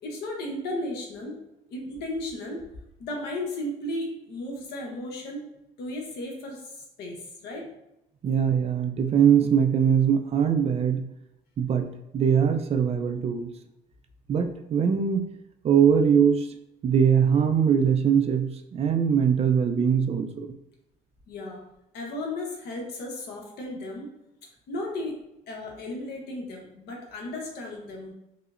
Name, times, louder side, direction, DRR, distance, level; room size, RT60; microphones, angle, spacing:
voice 1, 0.0-1.4 1.7-2.7 3.0-5.4 5.8-7.7 21.3-21.6 21.9-24.1 24.7-28.1, left 1 dB, 75° left, 0 dB, 0.9 m, -35 dB
voice 2, 8.2-11.0 11.6-13.5 14.3-15.3 15.6-16.5 16.8-20.5, right 7 dB, 40° right, 6 dB, 0.4 m, -22 dB
4.8 x 2.0 x 2.4 m, 0.86 s
cardioid pair, 110°, 17 cm